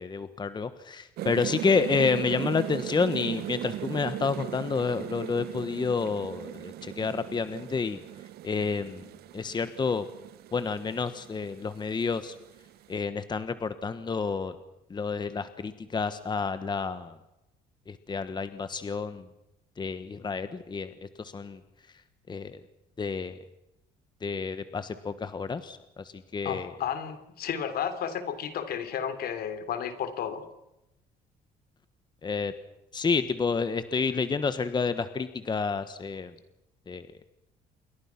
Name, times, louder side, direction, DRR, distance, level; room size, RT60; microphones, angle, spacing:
voice 1, 0.0-8.0 8.4-9.0 9.3-10.0 10.5-12.3 12.9-14.6 14.9-17.1 17.9-19.2 19.8-21.6 22.3-22.6 23.0-23.4 24.2-26.7 32.2-32.5 32.9-36.3 36.9-37.1, left 5 dB, 25° left, 11 dB, 1.3 m, -29 dB
sound 1, 1.2-13.0, right 13 dB, 70° right, 0.8 m, -38 dB
voice 2, 26.4-30.4, left 8 dB, 65° left, 11 dB, 3.2 m, -32 dB
28.0 x 22.5 x 5.9 m, 0.91 s
cardioid pair, 110°, 17 cm